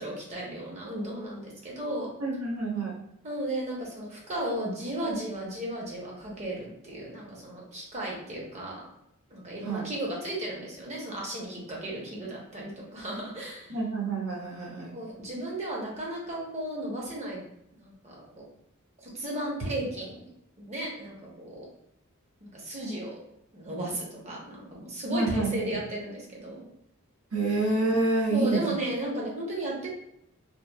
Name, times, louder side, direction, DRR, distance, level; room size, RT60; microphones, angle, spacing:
voice 1, 0.0-2.1 3.2-8.8 9.3-13.8 14.8-17.4 17.8-18.4 19.0-20.3 20.6-21.6 22.4-23.2 23.5-26.6 28.3-29.9, right 1 dB, 30° right, -3 dB, 0.7 m, -35 dB
voice 2, 2.2-3.0 9.6-9.9 13.7-14.9 25.1-25.8 27.3-28.6, right 3 dB, 90° right, -1 dB, 0.7 m, -28 dB
2.8 x 2.2 x 2.2 m, 0.78 s
head